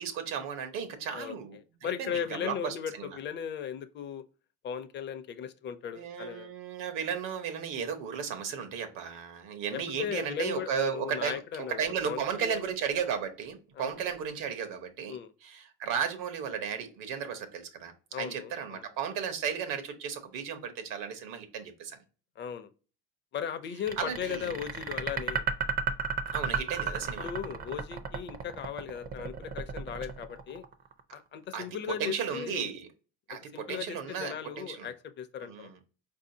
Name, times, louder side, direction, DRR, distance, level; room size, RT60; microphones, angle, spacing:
voice 1, 0.0-3.2 6.0-22.0 24.0-24.5 26.3-27.3 31.5-32.9 33.3-34.9 35.4-35.8, right 7 dB, 80° right, 1.0 m, -35 dB
voice 2, 1.1-4.2 4.6-6.5 9.7-12.6 13.8-14.0 15.1-15.3 18.1-18.9 22.4-22.7 23.3-25.5 27.2-30.7 31.1-32.7 33.3-35.7, left 8 dB, 35° left, 0.5 m, -37 dB
sound 1, 23.9-31.0, right 5 dB, 30° right, 0.4 m, -33 dB
4.5 x 2.7 x 2.7 m
cardioid pair, 130°, 32 cm